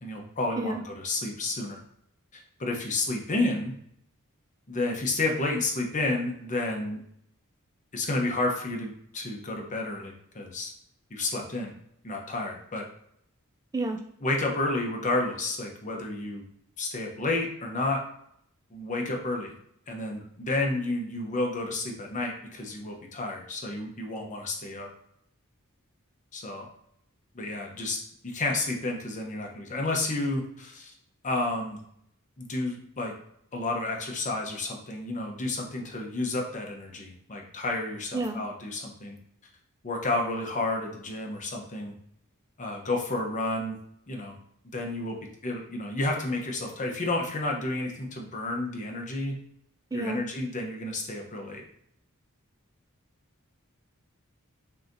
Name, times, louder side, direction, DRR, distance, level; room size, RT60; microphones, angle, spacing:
voice 1, 0.0-1.8 2.3-3.7 4.7-7.0 7.9-10.7 11.1-11.7 12.0-12.8 14.2-16.4 16.8-18.0 18.7-19.5 19.9-24.9 26.3-26.7 27.3-28.0 28.2-30.9 31.2-31.8 32.4-33.1 33.5-39.2 39.8-41.9 42.6-43.8 44.1-44.4 44.7-45.2 45.4-49.4 49.9-51.6, left 2 dB, 35° left, 1 dB, 0.9 m, -31 dB
voice 2, 49.9-50.2, right 2 dB, 15° right, 2 dB, 0.3 m, -30 dB
5.6 x 2.8 x 2.6 m, 0.73 s
head